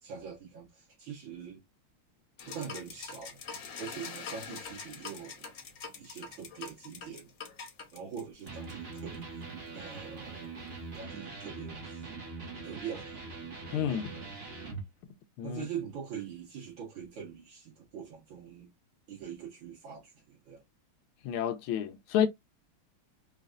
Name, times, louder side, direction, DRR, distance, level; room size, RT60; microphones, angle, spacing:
voice 1, 0.0-1.6 2.4-3.4 3.8-5.5 5.9-7.3 7.9-9.3 9.7-12.1 12.6-13.2 13.7-14.4 15.4-18.7 19.1-20.6, right 7 dB, 65° right, 2.2 m, -43 dB
sound 1, 2.4-9.2, left 5 dB, 55° left, 0.9 m, -44 dB
Electric guitar, 8.4-14.9, right 4 dB, 35° right, 1.1 m, -42 dB
voice 2, 13.7-14.1 15.4-15.6 21.2-22.3, left 9 dB, 90° left, 1.5 m, -29 dB
5.0 x 2.4 x 2.5 m
omnidirectional pair, 2.3 m